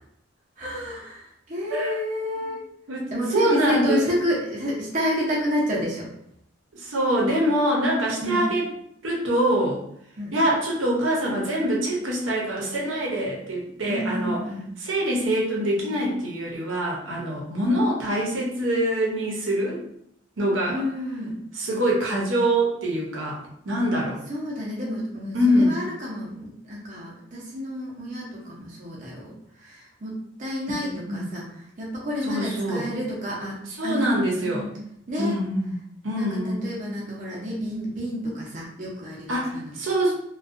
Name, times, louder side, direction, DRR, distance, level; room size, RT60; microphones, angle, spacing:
voice 1, 0.6-2.6 3.1-6.1 8.2-8.4 10.2-10.3 13.9-14.7 20.7-21.4 24.3-30.1 30.4-33.6 33.8-34.1 34.4-34.7 35.1-35.4 36.1-39.7, equal, 40° right, -5 dB, 0.6 m, -29 dB
voice 2, 2.9-4.1 6.7-8.6 9.0-9.8 10.3-14.4 14.8-19.8 20.4-20.8 21.5-23.4 23.7-24.2 25.3-25.7 30.8-31.3 32.2-32.9 33.8-34.7 35.2-35.7 36.0-36.7 39.3-40.1, right 1 dB, 85° right, -2 dB, 0.7 m, -24 dB
2.5 x 2.2 x 2.4 m, 0.72 s
head